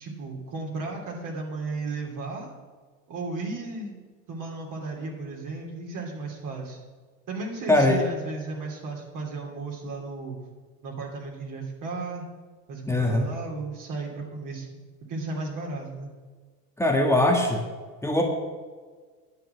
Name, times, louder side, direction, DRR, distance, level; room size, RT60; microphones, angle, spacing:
voice 1, 0.0-2.5 3.1-3.9 4.3-6.8 7.3-10.4 10.8-12.3 12.7-14.8 15.1-16.1, right 3 dB, 40° right, 0 dB, 3.0 m, -34 dB
voice 2, 7.7-8.0 12.9-13.3 16.8-17.6 18.0-18.2, left 1 dB, 5° left, 1 dB, 1.6 m, -21 dB
10.5 x 7.5 x 7.0 m, 1.5 s
hypercardioid pair, 85°, 48 cm